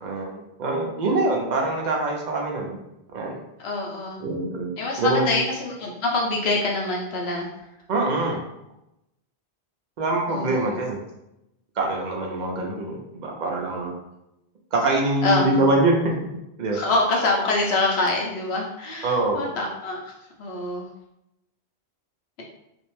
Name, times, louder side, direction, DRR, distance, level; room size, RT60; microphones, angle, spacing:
voice 1, 0.0-2.8 3.1-3.3 4.2-4.7 5.0-5.4 7.9-8.4 10.0-11.0 11.8-13.9 14.7-16.0 16.6-16.8 19.0-19.4, right 2 dB, 55° right, 0 dB, 0.5 m, -24 dB
voice 2, 3.6-4.2 4.8-7.7 10.3-10.7 15.2-15.7 16.7-20.9, left 3 dB, 70° left, -1 dB, 0.8 m, -25 dB
2.5 x 2.0 x 3.0 m, 0.87 s
omnidirectional pair, 1.1 m